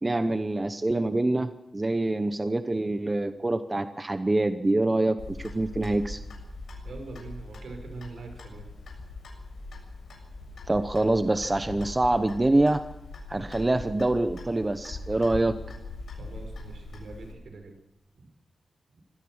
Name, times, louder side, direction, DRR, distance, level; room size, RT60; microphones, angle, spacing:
voice 1, 0.0-6.2 10.7-12.8 13.3-15.6, right 2 dB, 20° right, 9 dB, 0.9 m, -25 dB
Clock, 5.2-17.3, left 2 dB, 70° left, 7.2 m, -41 dB
voice 2, 6.8-8.7 16.1-17.7 18.1-18.3 18.9-19.0, right 3 dB, 70° right, 5 dB, 6.0 m, -43 dB
25.0 x 17.5 x 6.4 m, 0.88 s
wide cardioid pair, 160°, 0 cm